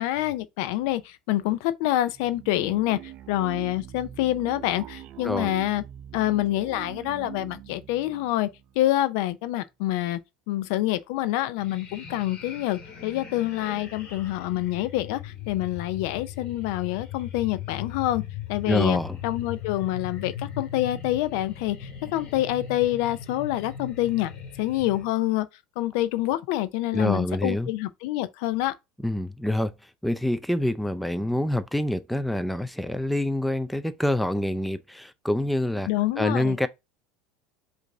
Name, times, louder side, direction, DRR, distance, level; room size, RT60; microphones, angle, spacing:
voice 1, 0.0-5.8 6.1-8.5 8.8-10.2 10.5-18.2 18.5-24.3 24.6-25.5 25.8-28.7 35.9-36.6, left 15 dB, 70° left, 0.4 m, -27 dB
sound 1, 2.1-9.3, right 11 dB, 45° right, 0.6 m, -43 dB
sound 2, 11.6-25.1, left 8 dB, 40° left, 1.8 m, -39 dB
voice 2, 18.7-19.2 26.9-27.7 29.0-35.9 36.2-36.7, left 1 dB, ahead, 0.4 m, -26 dB
5.1 x 2.6 x 3.6 m
hypercardioid pair, 90°, 2 cm